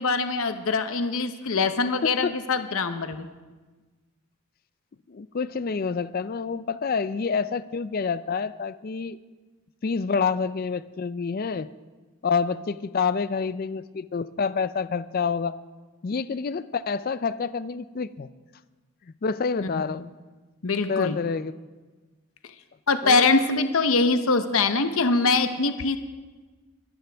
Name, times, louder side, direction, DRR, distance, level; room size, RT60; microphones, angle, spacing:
voice 1, 0.0-3.3 19.6-20.0 20.6-21.2 22.9-26.0, left 3 dB, 70° left, 9 dB, 0.8 m, -23 dB
voice 2, 2.0-2.4 5.1-9.2 9.8-11.7 12.2-15.6 16.0-18.3 19.2-20.1 20.9-21.5 23.0-23.3, left 5 dB, 40° left, 15 dB, 0.4 m, -28 dB
22.5 x 12.0 x 3.4 m, 1.3 s
head